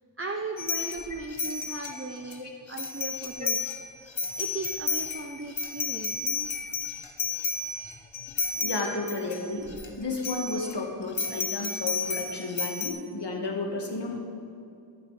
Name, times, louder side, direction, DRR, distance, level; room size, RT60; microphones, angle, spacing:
voice 1, 0.2-3.6 4.4-6.5 8.5-8.7, right 3 dB, 30° right, 2 dB, 0.6 m, -37 dB
sound 1, 0.6-2.3 2.7-3.8 4.1-9.9 10.2-10.7 11.2-12.9, left 4 dB, 85° left, 0.9 m, -32 dB
voice 2, 8.3-9.7 10.0-14.2, left 3 dB, 65° left, 1 dB, 1.5 m, -32 dB
11.0 x 10.5 x 3.3 m, 2.6 s
wide cardioid pair, 40°, 45 cm